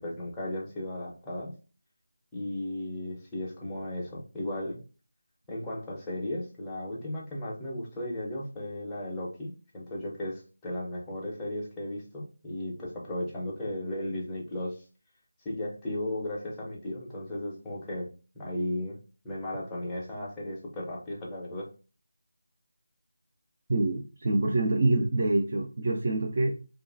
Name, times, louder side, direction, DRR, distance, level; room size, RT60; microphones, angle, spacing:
voice 1, 0.0-1.5 2.3-4.8 5.5-14.8 15.4-18.1 18.3-19.0 19.2-21.7, left 1 dB, 5° left, -7 dB, 0.6 m, -35 dB
voice 2, 23.7-26.5, right 2 dB, 35° right, 0 dB, 0.4 m, -26 dB
2.9 x 2.3 x 2.4 m, 0.34 s
figure-of-eight pair, 175°, 0 cm